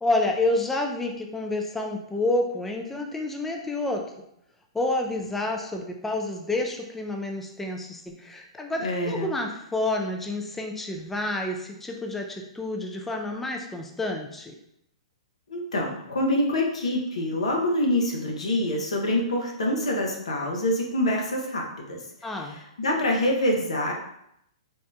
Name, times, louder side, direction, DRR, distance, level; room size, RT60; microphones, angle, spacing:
voice 1, 0.0-4.0 4.7-14.5 22.2-22.6, left 2 dB, 5° left, 2 dB, 0.3 m, -29 dB
voice 2, 8.8-9.3 15.5-22.0 22.3-23.9, left 1 dB, 80° left, 0 dB, 0.8 m, -26 dB
3.6 x 2.1 x 2.6 m, 0.76 s
hypercardioid pair, 125°, 3 cm